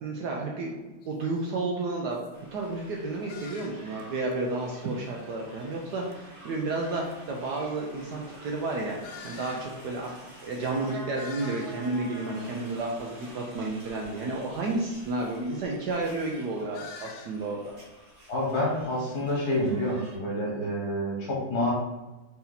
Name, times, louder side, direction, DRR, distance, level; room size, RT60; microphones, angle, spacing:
voice 1, 0.0-2.2 2.5-10.1 10.4-17.7, right 2 dB, 75° right, -1 dB, 0.9 m, -31 dB
sound 1, 1.0-1.1 1.7-1.8 2.1-2.3 3.3-4.0 4.3-4.4 6.1-6.2 7.1-7.2 9.0-9.7 10.2-10.3 10.5-10.6 10.9-11.9 12.4-12.8 16.7-17.4, left 5 dB, 75° left, 1.3 m, -46 dB
sound 2, 2.3-20.2, right 1 dB, 35° right, 1.0 m, -48 dB
voice 2, 18.3-21.7, left 1 dB, 50° left, -4 dB, 1.7 m, -28 dB
4.2 x 2.7 x 3.9 m, 1.1 s
omnidirectional pair, 2.3 m